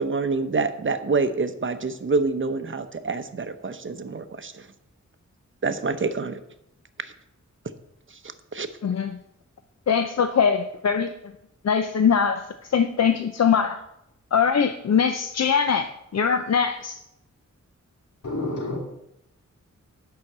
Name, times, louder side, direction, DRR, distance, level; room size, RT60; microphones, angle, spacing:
voice 1, 0.0-4.7 5.6-6.4 8.2-8.7, right 4 dB, 40° right, 10 dB, 0.8 m, -27 dB
voice 2, 8.8-9.2 9.9-11.1 11.6-13.8 14.3-17.0, left 6 dB, 60° left, 8 dB, 0.6 m, -22 dB
voice 3, 18.2-18.8, left 2 dB, 85° left, -1 dB, 3.0 m, -28 dB
9.5 x 5.8 x 7.3 m, 0.83 s
wide cardioid pair, 120°, 30 cm